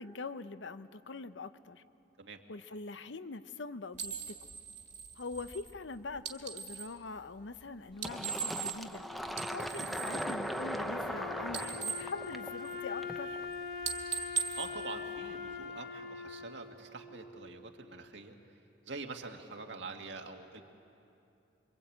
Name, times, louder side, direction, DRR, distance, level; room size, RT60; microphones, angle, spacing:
voice 1, 0.0-1.8 2.5-4.4 5.2-9.0 9.5-13.4, left 3 dB, 85° left, 12 dB, 0.8 m, -43 dB
sound 1, 3.9-7.0 7.9-9.0 9.3-11.2 11.4-13.0 13.3-13.5 13.8-15.6, right 6 dB, 40° right, 1.9 m, -40 dB
Fill (with liquid), 8.0-13.4, equal, ahead, 0.8 m, -39 dB
Wind instrument woodwind instrument, 8.9-18.0, left 5 dB, 55° left, 1.1 m, -43 dB
voice 2, 14.6-18.3 18.9-20.6, right 3 dB, 75° right, 3 dB, 2.0 m, -45 dB
25.5 x 24.0 x 8.6 m, 2.7 s
head